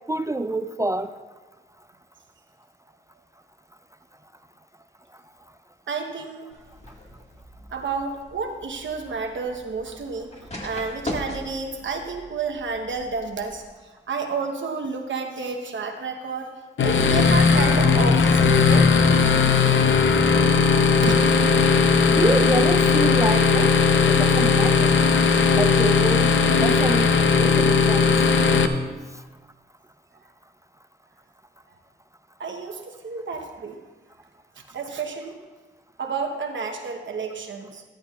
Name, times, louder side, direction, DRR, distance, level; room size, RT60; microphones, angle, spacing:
voice 1, 0.1-1.1 22.1-23.7 24.1-25.0 25.5-28.2, right 2 dB, 15° right, 10 dB, 0.3 m, -26 dB
voice 2, 5.9-6.5 7.7-10.3 10.6-16.5 16.8-18.9 21.0-21.3 32.4-33.8 34.6-35.4 36.0-37.8, right 4 dB, 80° right, 3 dB, 0.9 m, -30 dB
sound 1, 6.5-13.7, left 1 dB, 35° left, 1.7 m, -40 dB
sound 2, 16.8-28.7, left 5 dB, 80° left, 0.6 m, -18 dB
13.5 x 12.5 x 2.3 m, 1.3 s
cardioid pair, 80°, 19 cm